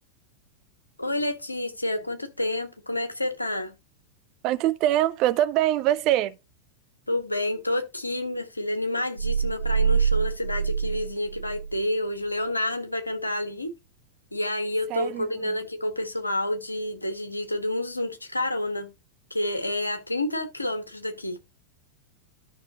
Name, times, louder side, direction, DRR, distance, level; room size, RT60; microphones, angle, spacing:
voice 1, 1.0-3.7 7.1-13.7 14.3-18.9 19.3-21.4, left 1 dB, 85° left, 1.6 m, -29 dB
voice 2, 4.4-6.4 14.9-15.5, right 13 dB, 40° right, 0.8 m, -24 dB
sound 1, 9.2-11.9, right 6 dB, 85° right, 0.4 m, -25 dB
13.0 x 5.9 x 3.0 m
figure-of-eight pair, 90°, 0 cm